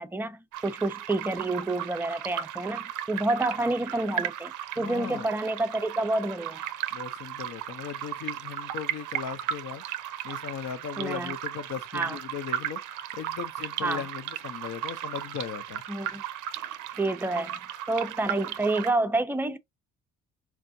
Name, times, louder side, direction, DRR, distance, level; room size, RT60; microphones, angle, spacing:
voice 1, 0.0-6.7 11.0-11.3 11.9-12.2 13.8-14.1 15.9-16.2 16.6-16.7 17.0-17.6 17.9-19.6, right 2 dB, 5° right, 0.4 m, -29 dB
sound 1, 0.5-18.9, right 11 dB, 85° right, 0.5 m, -36 dB
voice 2, 4.8-5.3 6.9-9.8 10.2-12.8 13.1-15.8, left 8 dB, 60° left, 0.6 m, -37 dB
4.5 x 2.5 x 2.6 m
cardioid pair, 90°, 30 cm